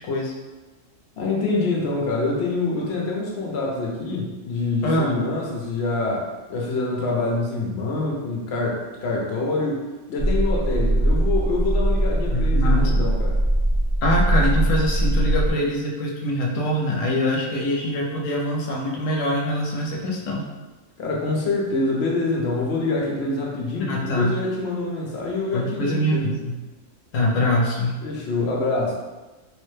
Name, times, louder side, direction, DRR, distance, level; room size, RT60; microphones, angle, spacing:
voice 1, 1.2-9.8 10.1-13.4 21.0-26.3 28.0-28.9, left 3 dB, 60° left, -2 dB, 0.9 m, -25 dB
voice 2, 4.8-5.2 12.3-12.9 14.0-20.4 23.8-24.3 25.5-26.6 27.1-27.9, equal, 80° left, -2 dB, 1.0 m, -24 dB
sound 1, 10.2-15.5, right 1 dB, 50° right, 0.8 m, -21 dB
3.1 x 2.1 x 3.1 m, 1.2 s
omnidirectional pair, 1.3 m